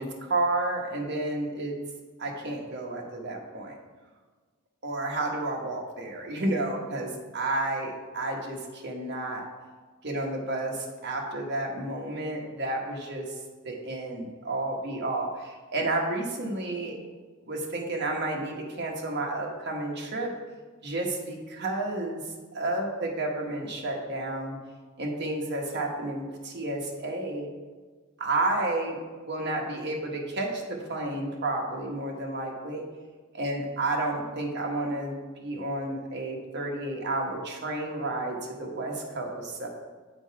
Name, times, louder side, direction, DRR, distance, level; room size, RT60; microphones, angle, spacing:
voice 1, 0.0-1.7 2.2-3.7 4.8-9.4 10.0-13.3 13.6-17.0 17.4-20.3 20.8-22.2 22.5-24.6 25.0-27.5 28.2-29.0 29.3-32.8 33.3-39.7, right 2 dB, 50° right, 0 dB, 1.2 m, -31 dB
8.2 x 3.9 x 4.7 m, 1.4 s
head